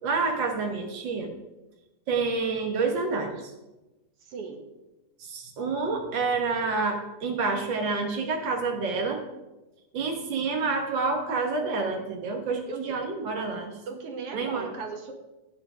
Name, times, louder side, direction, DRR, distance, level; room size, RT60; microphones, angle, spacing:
voice 1, 0.0-1.3 2.1-3.5 5.2-9.2 9.9-13.8 14.3-14.7, right 4 dB, 85° right, 3 dB, 1.0 m, -28 dB
voice 2, 4.2-4.6 12.7-12.8 13.9-15.1, right 4 dB, 55° right, 4 dB, 1.7 m, -37 dB
15.0 x 8.9 x 5.0 m, 1.0 s
omnidirectional pair, 4.2 m